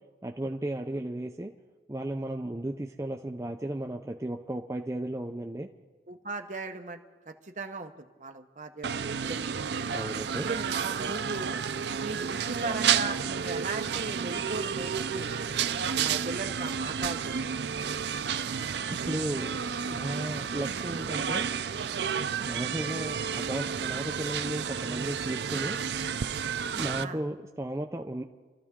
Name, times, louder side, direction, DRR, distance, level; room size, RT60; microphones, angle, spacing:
voice 1, 0.2-1.5 1.9-5.7 9.9-10.5 19.0-19.6 19.8-21.5 22.4-25.8 26.7-28.2, right 1 dB, 15° right, 2 dB, 0.5 m, -34 dB
voice 2, 6.1-7.0 7.3-9.8 10.4-11.6 12.0-15.4 15.8-17.6 27.0-27.2, right 3 dB, 45° right, 5 dB, 1.0 m, -38 dB
sound 1, 8.8-27.0, right 7 dB, 70° right, 0.5 m, -31 dB
28.0 x 13.5 x 3.7 m, 1.4 s
head